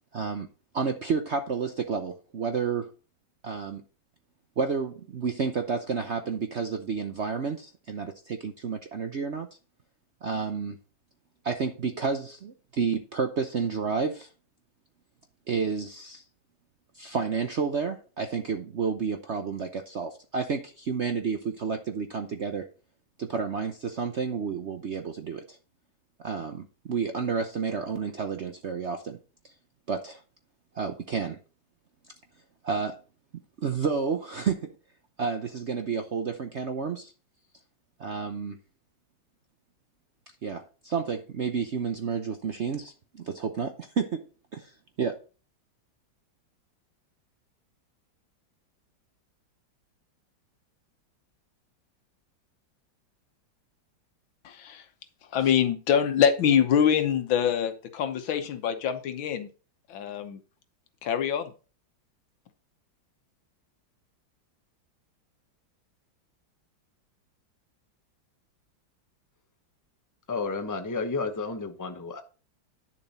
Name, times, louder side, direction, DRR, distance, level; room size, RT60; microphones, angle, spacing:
voice 1, 0.1-0.5 0.7-2.9 3.4-3.8 4.6-9.5 10.2-10.8 11.4-14.3 15.5-16.2 16.9-22.7 23.2-25.6 26.2-29.2 29.9-30.2 30.7-31.4 32.6-33.0 33.6-34.8 35.2-37.1 38.0-38.6 40.4-44.3 44.5-45.2, right 5 dB, 55° right, 7 dB, 0.7 m, -30 dB
voice 2, 54.4-54.8 55.3-59.5 59.9-60.4 61.0-61.5, left 8 dB, 85° left, 9 dB, 1.8 m, -24 dB
voice 3, 70.3-72.2, left 4 dB, 15° left, 6 dB, 0.7 m, -31 dB
10.0 x 7.1 x 4.2 m, 0.35 s
omnidirectional pair, 2.1 m